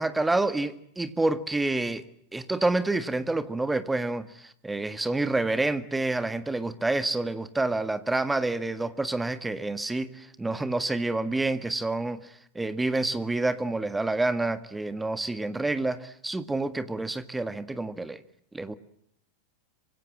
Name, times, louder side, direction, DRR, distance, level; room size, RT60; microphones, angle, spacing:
voice 1, 0.0-2.0 2.3-18.2 18.5-18.7, right 2 dB, 10° right, 12 dB, 1.7 m, -28 dB
26.0 x 25.5 x 7.6 m, 0.70 s
figure-of-eight pair, 90°, 0 cm